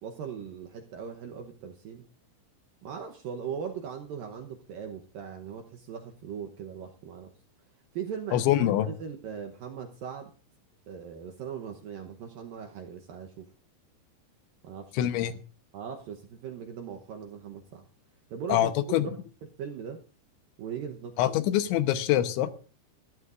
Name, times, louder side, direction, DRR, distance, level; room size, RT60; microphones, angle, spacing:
voice 1, 0.0-2.1 2.8-7.3 7.9-10.3 10.9-13.5 14.6-15.1 15.7-17.8 18.3-18.7 19.0-19.2 19.6-20.0 20.6-21.2, right 7 dB, 75° right, 4 dB, 2.1 m, -39 dB
voice 2, 8.3-8.9 14.9-15.4 18.5-19.1 21.2-22.5, left 12 dB, 80° left, 10 dB, 3.3 m, -25 dB
21.5 x 14.0 x 2.5 m, 0.37 s
omnidirectional pair, 5.3 m